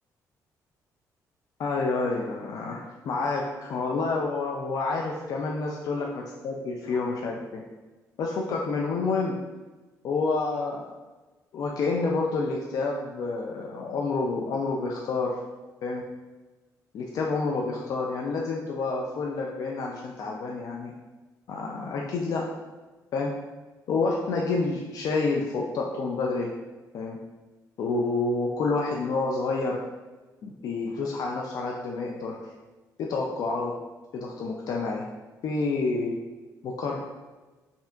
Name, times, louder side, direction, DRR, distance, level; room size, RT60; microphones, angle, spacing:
voice 1, 1.6-7.6 8.2-9.4 10.0-10.9 11.5-15.4 15.8-16.0 16.9-20.9 21.5-22.5 23.1-23.3 23.9-26.5 26.9-27.2 27.8-29.8 30.4-32.4 33.0-33.8 34.1-35.1 35.4-36.2 36.6-37.0, left 3 dB, 60° left, -1 dB, 0.4 m, -28 dB
5.6 x 2.7 x 2.4 m, 1.2 s
cardioid pair, 125°, 7 cm